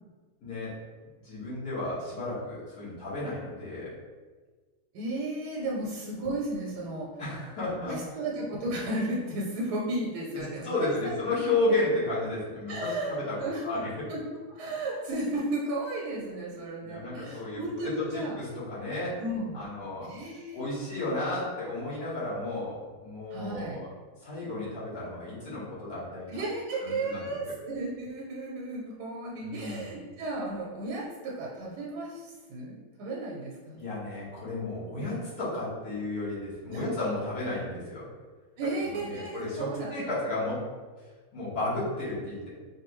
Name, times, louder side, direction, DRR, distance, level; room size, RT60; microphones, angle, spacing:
voice 1, 0.4-0.7 1.2-3.9 7.2-8.0 10.6-14.1 16.8-19.2 19.5-20.1 20.5-23.9 24.2-26.4 26.8-27.5 29.4-29.9 33.7-38.1 38.8-40.7 41.3-42.5, left 2 dB, 70° left, -9 dB, 2.0 m, -33 dB
voice 2, 4.9-7.1 7.6-11.2 12.7-13.6 14.1-14.2 14.5-18.3 19.2-19.6 20.0-20.6 23.3-23.8 26.3-33.8 36.7-36.9 38.6-39.9, right 2 dB, 85° right, -3 dB, 1.3 m, -34 dB
4.2 x 2.6 x 3.0 m, 1.4 s
omnidirectional pair, 1.7 m